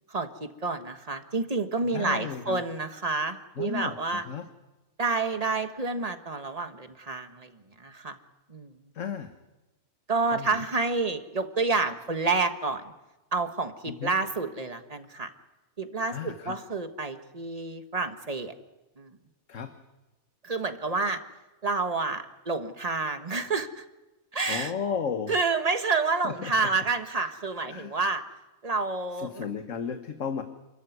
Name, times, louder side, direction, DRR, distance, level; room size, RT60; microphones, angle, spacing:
voice 1, 0.1-4.3 5.0-8.2 8.5-8.7 10.1-12.8 13.3-15.3 15.8-18.5 19.0-19.2 20.4-21.2 21.6-23.8 24.3-24.7 25.3-28.2 28.6-29.5, right 3 dB, 30° right, 7 dB, 1.5 m, -29 dB
voice 2, 1.8-2.6 3.6-4.5 8.9-9.3 10.3-10.7 13.9-14.1 16.1-16.6 19.5-19.7 24.5-25.4 26.2-26.7 27.7-28.0 29.1-30.4, left 6 dB, 65° left, 7 dB, 1.5 m, -34 dB
28.0 x 14.0 x 9.5 m, 1.1 s
omnidirectional pair, 1.4 m